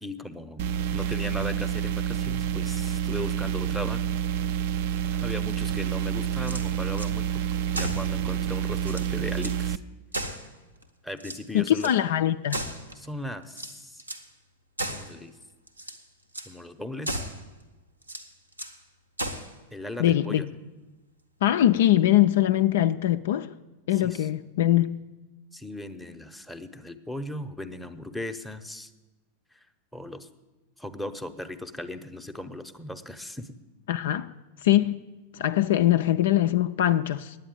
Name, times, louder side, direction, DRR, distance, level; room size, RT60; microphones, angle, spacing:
voice 1, 0.0-4.0 5.1-7.3 7.7-9.8 11.0-11.9 13.0-14.0 14.9-15.4 16.4-17.2 19.7-20.5 24.0-24.3 25.5-28.9 29.5-29.6 29.9-30.3 30.8-33.6, left 1 dB, ahead, 0.8 m, -37 dB
sound 1, 0.6-9.8, right 9 dB, 50° right, 0.4 m, -28 dB
sound 2, 6.3-7.1 7.7-8.1 8.5-8.6 8.8-9.6 10.1-10.8 11.2-12.0 12.5-13.1 13.5-14.3 14.8-15.2 15.7-16.0 16.3-16.5 17.0-17.4 18.0-18.8 19.2-19.5, right 1 dB, 85° right, 1.0 m, -35 dB
voice 2, 11.5-12.7 20.0-20.4 21.4-23.5 23.9-25.0 33.9-34.3 34.6-35.0 35.3-37.4, left 13 dB, 55° left, 0.4 m, -22 dB
9.6 x 8.8 x 8.9 m
figure-of-eight pair, 90°, 0 cm